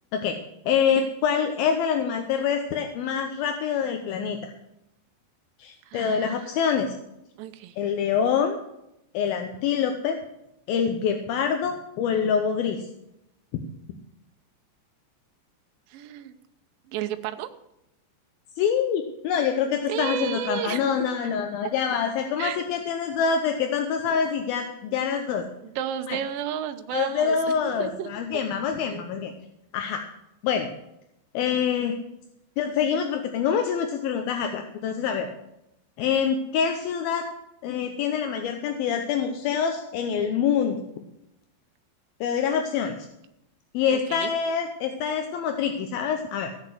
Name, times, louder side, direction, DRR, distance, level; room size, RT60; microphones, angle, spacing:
voice 1, 0.7-4.5 5.6-7.0 7.8-8.6 9.1-10.2 10.7-12.9 13.5-13.6 18.6-25.5 26.1-26.2 26.9-29.3 29.7-30.0 30.4-30.7 31.3-32.0 32.6-35.3 36.0-37.3 37.6-40.9 42.2-42.9 43.7-46.5, left 7 dB, 75° left, 6 dB, 2.3 m, -25 dB
voice 2, 5.9-6.5 7.4-7.8 15.9-16.3 16.9-17.5 19.9-20.9 22.4-22.6 25.6-28.1 28.9-29.0 43.9-44.3, right 10 dB, 85° right, 8 dB, 2.0 m, -32 dB
16.5 x 6.7 x 7.8 m, 0.85 s
omnidirectional pair, 5.1 m